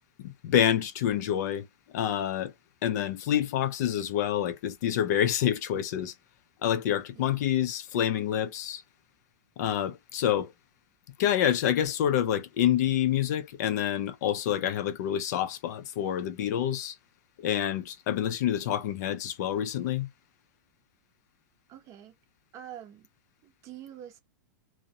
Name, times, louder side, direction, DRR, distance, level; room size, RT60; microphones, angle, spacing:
voice 1, 0.2-1.7 1.9-2.5 2.8-6.1 6.6-8.8 9.6-10.5 11.2-17.0 17.4-20.1, left 10 dB, 60° left, 0.4 m, -27 dB
voice 2, 21.7-22.1 22.5-23.1 23.4-24.2, right 10 dB, 30° right, 0.6 m, -45 dB
2.6 x 2.0 x 2.8 m
supercardioid pair, 150°, 10 cm